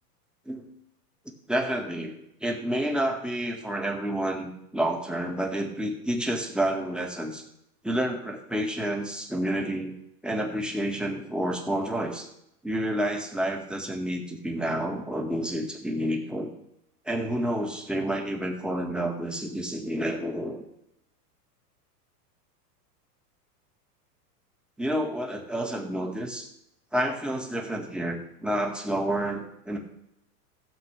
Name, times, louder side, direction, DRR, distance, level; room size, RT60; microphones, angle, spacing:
voice 1, 1.5-7.4 7.8-9.9 10.2-12.3 12.6-16.5 17.1-20.6 24.8-26.5 26.9-29.8, right 1 dB, ahead, 0 dB, 2.0 m, -29 dB
16.5 x 7.7 x 3.6 m, 0.81 s
hypercardioid pair, 110°, 48 cm